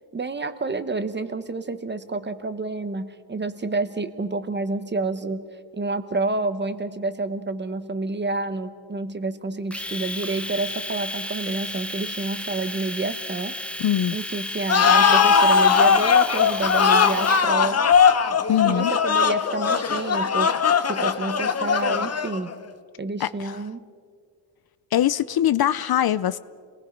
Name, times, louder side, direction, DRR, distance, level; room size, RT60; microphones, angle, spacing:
voice 1, 0.1-5.5 5.7-13.6 14.1-17.9 18.6-20.5 20.8-22.5 23.0-23.8, right 3 dB, 25° right, 11 dB, 1.0 m, -29 dB
Domestic sounds home sounds, 9.7-17.5, left 1 dB, 5° left, 0.7 m, -33 dB
voice 2, 13.8-14.2 18.5-18.9 23.2-23.6 24.9-26.4, left 11 dB, 55° left, 16 dB, 0.5 m, -22 dB
sound 1, 14.7-22.5, left 6 dB, 35° left, 0.9 m, -19 dB
30.0 x 19.5 x 5.2 m, 2.1 s
wide cardioid pair, 160°, 46 cm